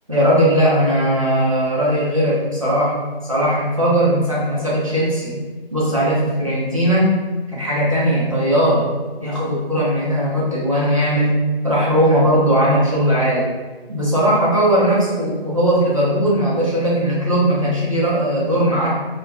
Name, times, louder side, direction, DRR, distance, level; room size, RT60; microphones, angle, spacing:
voice 1, 0.1-2.9 3.2-5.3 5.7-7.2 7.5-8.8 9.2-11.4 11.6-13.4 13.9-18.9, equal, 35° right, -8 dB, 0.5 m, -18 dB
2.2 x 2.2 x 2.6 m, 1.3 s
figure-of-eight pair, 180°, 30 cm